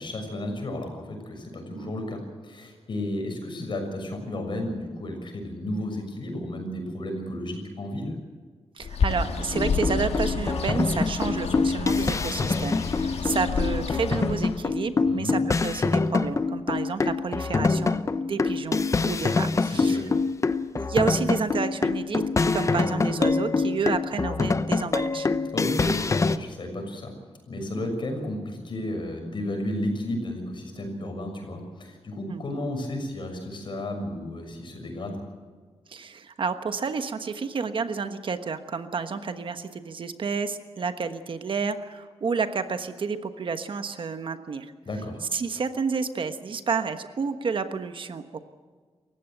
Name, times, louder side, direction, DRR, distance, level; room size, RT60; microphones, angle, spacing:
voice 1, 0.0-8.1 15.0-15.4 19.6-20.1 25.5-27.1 27.5-35.2 44.8-45.2, left 1 dB, 50° left, 4 dB, 6.6 m, -33 dB
voice 2, 8.7-20.0 20.7-22.2 22.5-25.3 27.7-27.9 32.3-32.6 35.9-44.7 45.3-48.4, right 5 dB, 55° right, 9 dB, 1.3 m, -30 dB
Bird, 8.8-14.7, left 5 dB, 80° left, 1.7 m, -30 dB
sound 1, 9.5-26.4, left 4 dB, 30° left, 0.8 m, -25 dB
28.5 x 15.5 x 8.1 m, 1.5 s
wide cardioid pair, 160°, 11 cm